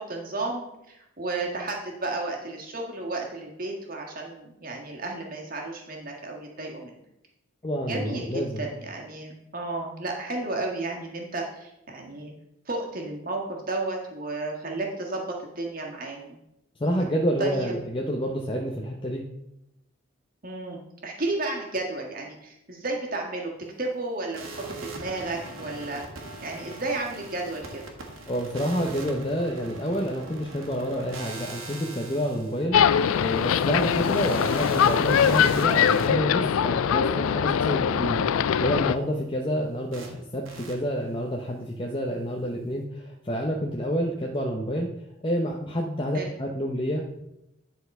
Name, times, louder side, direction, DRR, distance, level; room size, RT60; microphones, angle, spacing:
voice 1, 0.1-7.0 7.9-12.3 12.6-16.4 17.4-17.7 20.4-23.5 23.8-26.0 26.4-27.8 46.1-46.3, right 2 dB, 40° right, 0 dB, 1.6 m, -33 dB
voice 2, 7.6-8.6 16.8-19.2 28.3-32.8 33.2-44.9 45.2-47.2, equal, 25° left, -1 dB, 0.7 m, -28 dB
sound 1, 24.3-36.1 39.9-40.1 40.4-40.7, right 3 dB, 75° right, 1.6 m, -41 dB
sound 2, 32.7-38.9, left 8 dB, 80° left, 0.4 m, -22 dB
10.5 x 4.1 x 5.3 m, 0.86 s
head